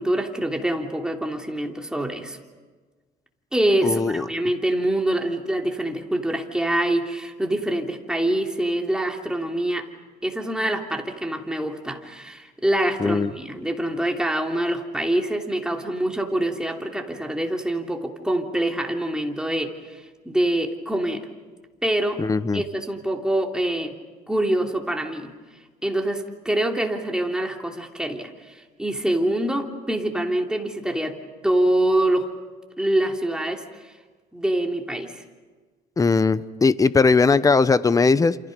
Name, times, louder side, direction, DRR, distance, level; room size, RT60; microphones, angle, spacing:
voice 1, 0.0-2.4 3.5-9.9 10.2-21.3 21.8-22.2 22.5-23.9 24.3-25.3 25.8-31.2 31.4-32.3 32.8-33.6 34.3-35.2, right 1 dB, 5° right, 2 dB, 3.0 m, -25 dB
voice 2, 3.8-4.3 13.0-13.3 22.2-22.6 36.0-38.4, left 4 dB, 20° left, 15 dB, 0.9 m, -19 dB
29.0 x 28.0 x 5.3 m, 1.4 s
cardioid pair, 110°, 17 cm